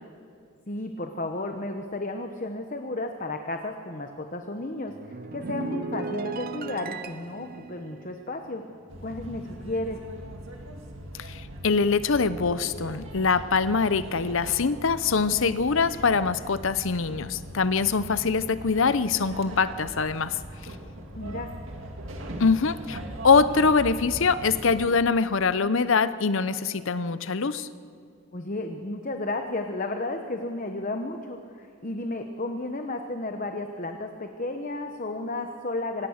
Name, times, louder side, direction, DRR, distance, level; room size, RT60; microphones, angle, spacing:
voice 1, 0.7-8.6 9.0-10.0 21.1-21.5 28.3-36.1, left 2 dB, 35° left, 5 dB, 1.0 m, -33 dB
sound 1, 4.9-9.5 9.8-10.1, right 4 dB, 40° right, 0.7 m, -37 dB
sound 2, 8.9-24.9, right 1 dB, 60° right, 2.1 m, -40 dB
voice 2, 11.2-20.4 22.4-27.7, left 4 dB, 60° left, 14 dB, 0.7 m, -24 dB
25.0 x 18.0 x 6.5 m, 2.4 s
head